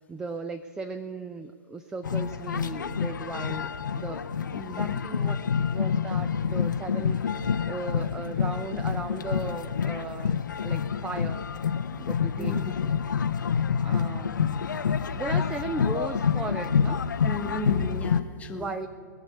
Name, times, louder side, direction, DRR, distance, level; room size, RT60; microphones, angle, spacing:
voice 1, 0.0-3.7 3.9-5.4 5.7-11.4 12.0-12.6 13.8-14.7 15.1-17.1 18.5-18.9, right 3 dB, 5° right, 9 dB, 0.3 m, -37 dB
sound 1, 2.0-18.2, left 6 dB, 65° left, 0.5 m, -27 dB
voice 2, 4.5-5.0 12.4-12.9 17.2-18.7, left 1 dB, 15° left, 5 dB, 1.1 m, -36 dB
20.5 x 7.1 x 8.5 m, 2.2 s
figure-of-eight pair, 115°, 11 cm